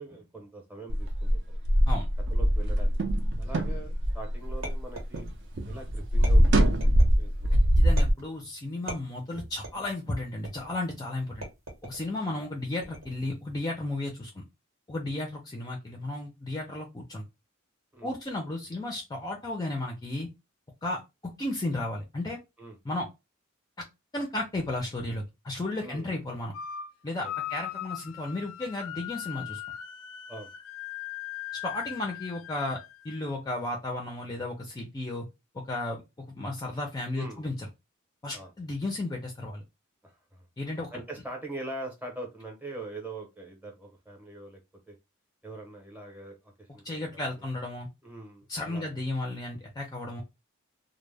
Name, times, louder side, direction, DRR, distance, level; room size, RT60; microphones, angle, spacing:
voice 1, 0.0-1.6 2.3-3.1 3.4-5.3 5.7-6.8 7.1-7.8 17.9-18.1 22.6-22.8 25.8-26.2 27.2-27.3 30.3-30.5 37.1-37.4 38.3-38.5 40.0-40.4 40.9-44.6 44.9-45.0 45.4-47.5 48.0-49.0, right 2 dB, 10° right, 1 dB, 0.7 m, -43 dB
sound 1, 0.9-5.3 5.6-8.1, equal, 60° right, 0.5 m, -23 dB
sound 2, 4.6-5.6 6.2-7.1 8.0-8.4 8.9-9.9 10.4-10.8 11.4-12.1 12.8-13.3, right 1 dB, 90° right, 1.1 m, -41 dB
voice 2, 7.5-11.4 11.8-14.4 14.9-17.2 18.0-20.3 20.8-21.0 21.4-22.4 22.8-23.1 24.1-26.5 27.0-29.6 31.6-32.8 33.0-35.3 35.5-36.0 36.3-37.7 38.2-39.6 40.6-40.9 46.8-47.9 48.5-50.2, left 2 dB, 20° left, 1 dB, 0.4 m, -34 dB
sound 3, 26.5-26.9 27.2-33.3, left 11 dB, 90° left, 0.3 m, -39 dB
2.0 x 2.0 x 3.2 m, 0.24 s
head